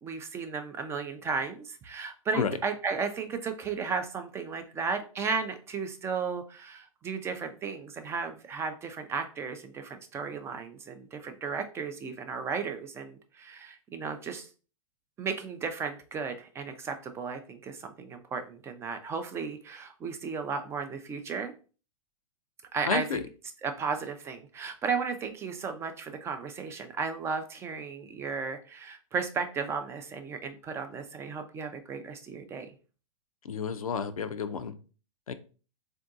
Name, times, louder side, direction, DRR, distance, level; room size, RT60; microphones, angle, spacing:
voice 1, 0.0-14.5 15.2-21.5 22.7-23.2 23.6-32.7, right 5 dB, 15° right, 8 dB, 0.3 m, -34 dB
voice 2, 22.9-23.2 33.4-34.8 35.3-35.4, left 6 dB, 80° left, 10 dB, 0.4 m, -31 dB
3.7 x 2.6 x 2.4 m, 0.37 s
hypercardioid pair, 110°, 18 cm